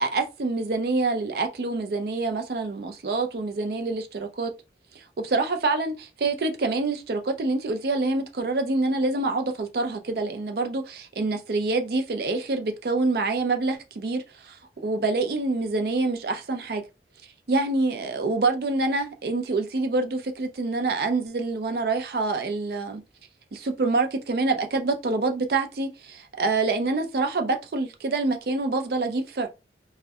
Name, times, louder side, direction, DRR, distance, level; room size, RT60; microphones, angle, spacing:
voice 1, 0.0-4.5 5.2-16.8 17.5-23.0 23.5-29.5, right 3 dB, 60° right, 0.4 m, -26 dB
2.6 x 2.1 x 2.3 m
head